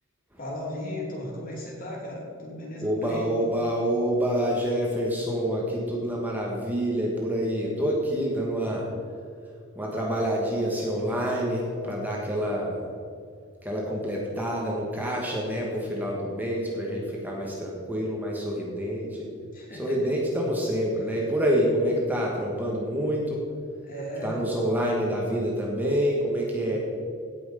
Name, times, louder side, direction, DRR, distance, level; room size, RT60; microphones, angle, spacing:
voice 1, 0.4-3.3 19.5-20.1 23.8-24.4, left 1 dB, 45° left, -2 dB, 2.8 m, -36 dB
voice 2, 2.8-8.9 9.7-12.9 13.6-19.3 19.8-23.4 24.2-26.8, equal, 10° right, -3 dB, 1.4 m, -27 dB
16.5 x 6.2 x 5.0 m, 2.4 s
head